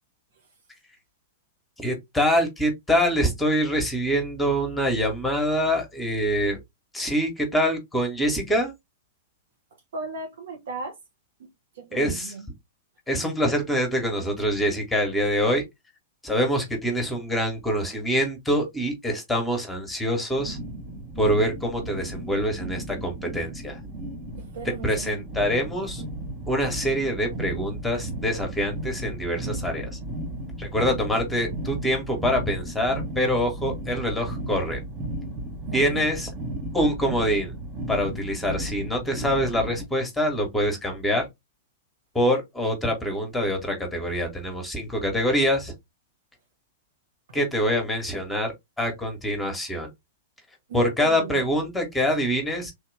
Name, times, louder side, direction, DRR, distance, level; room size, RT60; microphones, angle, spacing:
voice 1, 1.8-6.6 6.9-8.7 11.9-12.3 13.1-15.6 16.2-20.6 21.2-23.8 24.8-26.0 26.5-30.0 30.6-34.8 35.7-36.3 36.7-37.5 37.9-41.3 42.1-45.7 47.3-49.9 50.7-52.7, equal, 5° left, 1.4 m, -25 dB
voice 2, 9.9-10.9 11.4-11.5 11.7-12.5 24.4-25.4 35.7-36.1 50.7-51.5, right 4 dB, 60° right, 1.3 m, -36 dB
Deep sonorous machine ambience, 20.3-39.8, right 1 dB, 25° right, 1.0 m, -35 dB
3.4 x 2.8 x 3.2 m
figure-of-eight pair, 100°, 0 cm